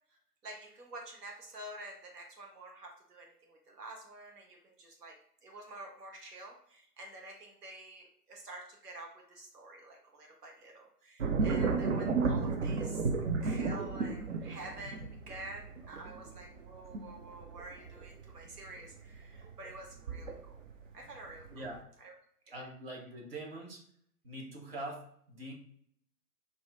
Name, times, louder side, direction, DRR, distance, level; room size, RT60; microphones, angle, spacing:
voice 1, 0.4-13.1 13.4-20.6 20.9-21.7 22.0-22.1 22.5-22.6, right 2 dB, 75° right, 1 dB, 0.8 m, -49 dB
sound 1, 11.2-20.8 21.2-21.8, right 4 dB, 55° right, 0.5 m, -33 dB
voice 2, 21.5-21.8 22.5-23.8 24.2-25.5, right 1 dB, 40° right, 0 dB, 1.0 m, -43 dB
4.0 x 2.5 x 2.2 m, 0.64 s
figure-of-eight pair, 130°, 47 cm